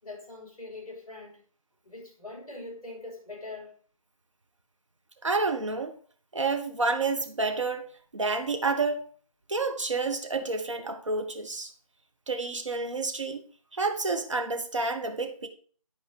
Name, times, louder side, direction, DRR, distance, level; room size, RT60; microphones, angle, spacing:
voice 1, 0.0-1.4 1.8-3.7, left 2 dB, 10° left, 4.8 m, -42 dB
voice 2, 5.2-5.9 6.3-7.9 8.1-9.0 9.5-11.7 12.3-13.4 13.7-15.5, right 3 dB, 55° right, 1.6 m, -29 dB
11.5 x 4.8 x 4.7 m
figure-of-eight pair, 165°, 18 cm